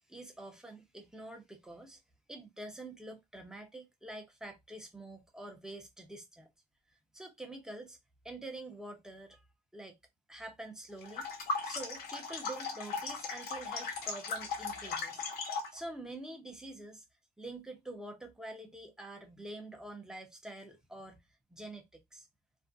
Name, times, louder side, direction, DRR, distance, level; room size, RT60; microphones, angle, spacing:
voice 1, 0.1-2.0 2.3-6.5 6.9-8.0 8.2-9.4 9.7-10.0 10.3-11.3 11.6-17.0 17.4-21.2 21.5-22.3, right 1 dB, 5° right, 0.7 m, -46 dB
sound 1, 11.0-15.8, left 4 dB, 65° left, 0.8 m, -38 dB
2.5 x 2.2 x 2.4 m
cardioid pair, 110°, 17 cm